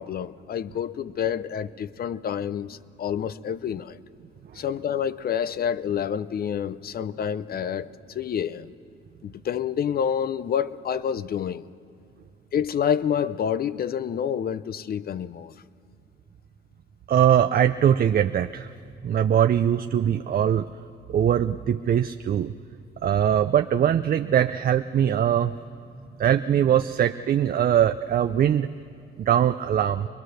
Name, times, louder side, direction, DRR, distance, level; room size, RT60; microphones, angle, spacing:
voice 1, 0.0-4.0 4.5-8.7 9.2-11.7 12.5-15.5, left 8 dB, 50° left, 0.6 m, -28 dB
voice 2, 17.1-18.7 19.0-20.7 21.1-22.5 23.0-25.6 26.2-28.7 29.2-30.1, right 9 dB, 50° right, 0.5 m, -21 dB
22.5 x 21.5 x 6.5 m
cardioid pair, 90°, 20 cm